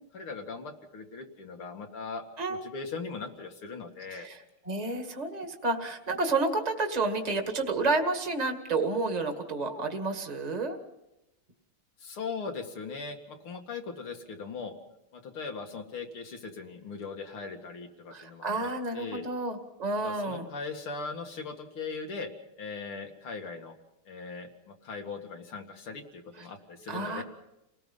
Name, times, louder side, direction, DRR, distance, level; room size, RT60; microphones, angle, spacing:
voice 1, 0.1-4.3 12.0-14.7 15.1-18.7 18.9-19.2 20.0-22.3 22.6-23.7 24.1-27.2, left 4 dB, 80° left, 4 dB, 3.1 m, -39 dB
voice 2, 4.1-10.8 18.1-20.5 26.4-26.5 26.9-27.2, right 3 dB, 20° right, 4 dB, 2.1 m, -30 dB
30.0 x 19.5 x 5.6 m, 0.86 s
omnidirectional pair, 2.3 m